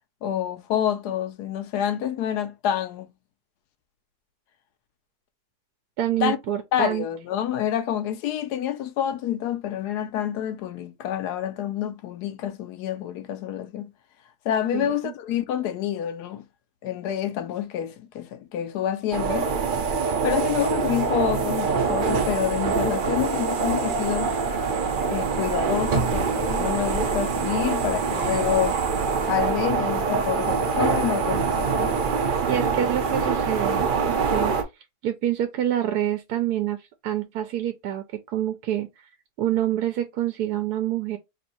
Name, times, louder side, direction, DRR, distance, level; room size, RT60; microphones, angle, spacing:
voice 1, 0.2-3.1 6.2-6.4 6.7-13.9 14.4-16.5 16.8-19.5 20.2-24.3 25.1-28.8 29.3-31.9, left 10 dB, 90° left, 1.2 m, -28 dB
voice 2, 6.0-7.0 14.7-15.1 32.5-34.6 35.0-39.1 39.4-41.2, right 11 dB, 80° right, 1.1 m, -27 dB
sound 1, 19.1-34.6, right 5 dB, 55° right, 0.5 m, -24 dB
3.1 x 2.6 x 4.2 m
omnidirectional pair, 1.7 m